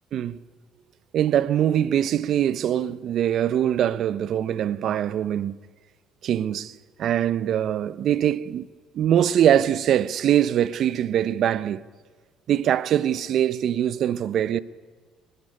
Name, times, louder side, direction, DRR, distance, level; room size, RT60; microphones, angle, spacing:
voice 1, 1.1-5.6 6.2-8.7 8.9-11.8 12.5-14.6, right 10 dB, 60° right, 0.7 m, -23 dB
21.0 x 15.0 x 10.0 m
supercardioid pair, 75°, 0 cm